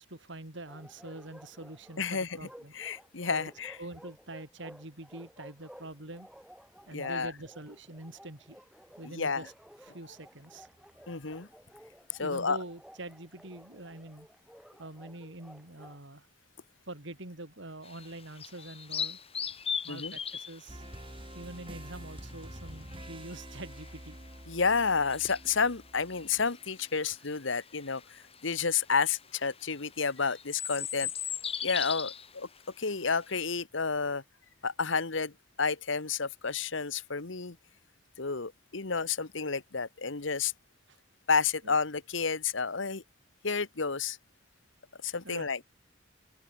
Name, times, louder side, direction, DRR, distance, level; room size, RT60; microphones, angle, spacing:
voice 1, 0.0-2.7 3.3-3.4 3.8-6.3 6.9-8.6 9.0-9.5 9.8-10.7 12.2-14.3 14.8-16.3 16.9-19.2 19.8-20.8 21.3-24.2 40.9-41.0 41.6-41.8 45.0-45.5, right 2 dB, 65° right, 3.9 m, -45 dB
Bark, 0.7-16.0, equal, 5° right, 4.9 m, -54 dB
voice 2, 2.0-2.4 2.7-3.8 6.9-7.3 9.1-9.5 11.1-11.5 12.2-12.6 19.9-20.1 24.5-31.1 31.6-32.5 32.8-34.2 34.6-35.3 35.6-37.6 38.2-40.5 41.3-43.0 43.4-44.2 45.0-45.6, left 5 dB, 70° left, 1.4 m, -30 dB
sound 1, 17.8-33.4, left 7 dB, 30° left, 4.1 m, -40 dB
sound 2, 20.7-27.4, right 1 dB, 25° right, 6.0 m, -47 dB
open air
head